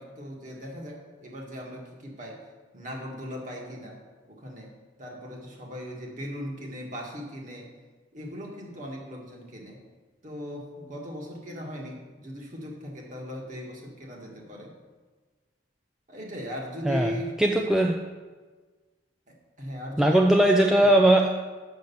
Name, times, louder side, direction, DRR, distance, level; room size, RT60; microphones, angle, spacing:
voice 1, 0.0-2.4 2.7-4.0 4.3-4.7 5.0-7.7 8.1-9.8 10.2-14.7 16.1-17.4 19.3-21.0, equal, 40° right, -1 dB, 1.6 m, -38 dB
voice 2, 17.4-18.0 20.0-21.3, right 1 dB, 5° right, 2 dB, 0.4 m, -19 dB
6.5 x 6.4 x 7.0 m, 1.4 s
head